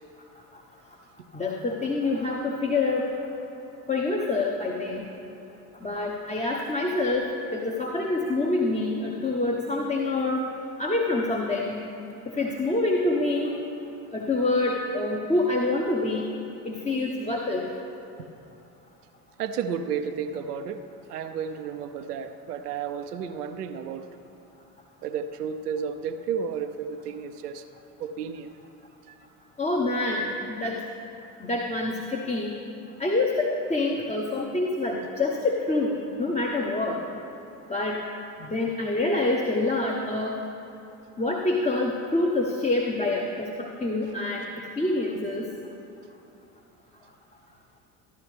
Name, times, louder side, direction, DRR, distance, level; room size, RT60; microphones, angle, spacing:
voice 1, 1.3-3.1 3.9-5.1 5.8-10.4 10.8-11.9 12.3-13.5 14.1-16.3 16.6-17.7 29.6-30.3 30.6-30.8 31.4-32.6 33.0-37.0 37.7-38.0 38.4-40.4 41.2-44.5 44.8-45.5, left 2 dB, 15° left, -1 dB, 1.0 m, -26 dB
voice 2, 19.4-20.8 21.1-24.1 25.0-27.6 28.0-28.5 29.1-29.2, right 7 dB, 90° right, 7 dB, 0.6 m, -32 dB
14.5 x 11.0 x 3.4 m, 2.7 s
hypercardioid pair, 60°, 45 cm